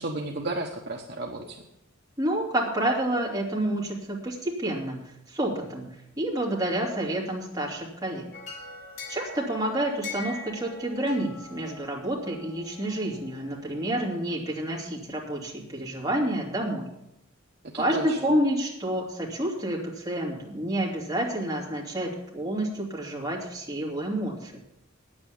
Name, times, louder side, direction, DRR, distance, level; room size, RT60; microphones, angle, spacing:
voice 1, 0.0-1.6 17.7-18.2, right 2 dB, 50° right, 1 dB, 1.1 m, -33 dB
voice 2, 2.2-5.0 5.3-5.9 6.2-8.3 9.1-16.9 17.8-24.6, right 1 dB, 15° right, -4 dB, 2.9 m, -29 dB
sound 1, 8.3-14.0, left 3 dB, 70° left, 3.5 m, -43 dB
9.6 x 8.7 x 8.4 m, 0.83 s
head